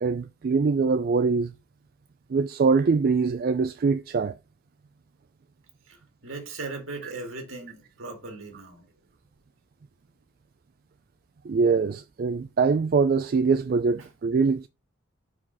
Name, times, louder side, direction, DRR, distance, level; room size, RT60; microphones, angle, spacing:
voice 1, 0.0-1.5 2.3-4.3 11.5-14.7, right 4 dB, 45° right, 0.3 m, -23 dB
voice 2, 5.9-8.9 14.0-14.1, right 3 dB, 65° right, 2.0 m, -38 dB
5.7 x 5.0 x 3.9 m
head